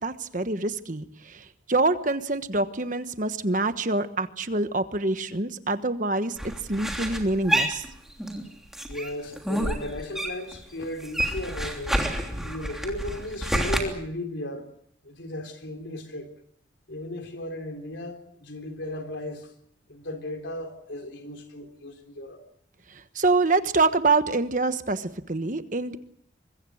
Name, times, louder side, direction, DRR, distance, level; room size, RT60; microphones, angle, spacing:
voice 1, 0.0-6.4 6.7-7.8 23.1-26.0, right 3 dB, 45° right, 1.3 m, -25 dB
sound 1, 6.4-8.4 8.7-10.6 10.8-13.8, right 1 dB, ahead, 3.2 m, -28 dB
voice 2, 8.9-12.0 12.4-14.7 15.0-16.3 16.9-19.5 19.9-22.4, left 1 dB, 85° left, 3.9 m, -36 dB
24.5 x 22.5 x 6.4 m
head